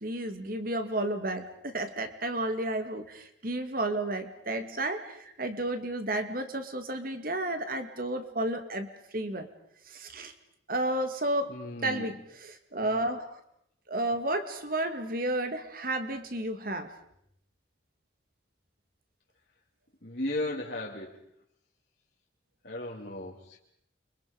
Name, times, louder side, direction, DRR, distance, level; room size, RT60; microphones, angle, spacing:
voice 1, 0.0-9.5 9.9-10.3 10.7-11.5 11.8-13.4 13.9-16.9, right 1 dB, 50° right, 8 dB, 2.4 m, -32 dB
voice 2, 11.5-12.1 20.0-21.2 22.6-23.6, left 1 dB, 55° left, -3 dB, 2.8 m, -35 dB
29.5 x 25.0 x 5.3 m, 0.75 s
head